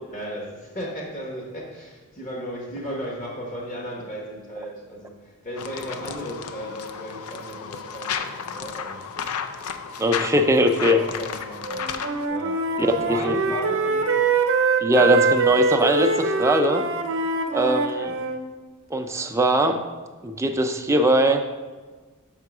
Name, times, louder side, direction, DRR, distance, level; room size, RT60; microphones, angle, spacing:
voice 1, 0.0-9.3 9.9-10.1 10.8-11.9 12.3-14.2, equal, 35° left, 1.1 m, -35 dB
sound 1, 5.6-12.3, left 6 dB, 75° left, 0.4 m, -33 dB
voice 2, 10.0-11.0 12.8-13.4 14.8-16.8 17.5-18.2 18.9-19.8 20.2-21.4, right 1 dB, 15° right, 0.4 m, -21 dB
Wind instrument woodwind instrument, 11.6-18.4, right 4 dB, 65° right, 0.7 m, -23 dB
5.6 x 3.7 x 5.9 m
head